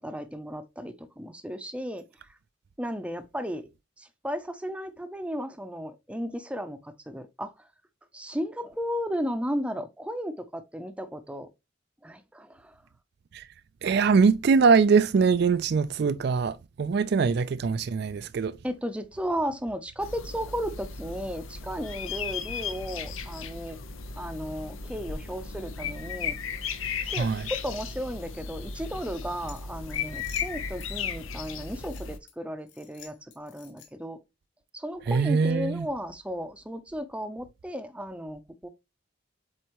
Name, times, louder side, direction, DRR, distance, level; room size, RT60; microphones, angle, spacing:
voice 1, 0.0-2.0 2.8-3.7 4.0-7.5 8.1-11.5 12.0-12.7 18.6-23.8 24.2-26.4 27.1-34.2 34.7-38.7, equal, 5° right, 0.6 m, -34 dB
voice 2, 13.8-18.5 27.2-27.5 35.1-35.9, right 5 dB, 55° right, 0.3 m, -22 dB
sound 1, 20.0-32.2, left 6 dB, 90° left, 0.8 m, -36 dB
sound 2, 29.5-30.9 31.4-32.3 32.7-34.1, left 8 dB, 65° left, 2.0 m, -50 dB
7.8 x 4.1 x 3.0 m
head